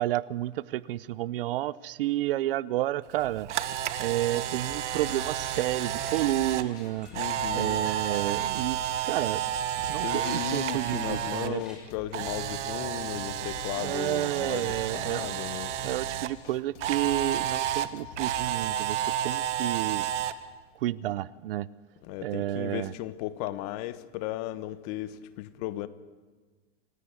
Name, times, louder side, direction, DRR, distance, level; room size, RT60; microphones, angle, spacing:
voice 1, 0.0-3.5 4.0-7.1 7.5-9.4 9.9-11.6 13.8-15.4 15.8-20.1 20.8-21.7 22.2-22.9, right 15 dB, 50° right, 0.7 m, -30 dB
Camera, 3.1-11.5 11.8-16.3 16.8-20.3, right 11 dB, 80° right, 1.7 m, -31 dB
sound 1, 4.3-18.6, left 8 dB, 75° left, 2.5 m, -48 dB
sound 2, 4.4-11.8, equal, ahead, 6.4 m, -50 dB
voice 2, 7.1-7.9 10.0-15.7 22.0-25.9, left 14 dB, 35° left, 1.1 m, -36 dB
27.0 x 16.5 x 9.7 m
supercardioid pair, 170°, 35 cm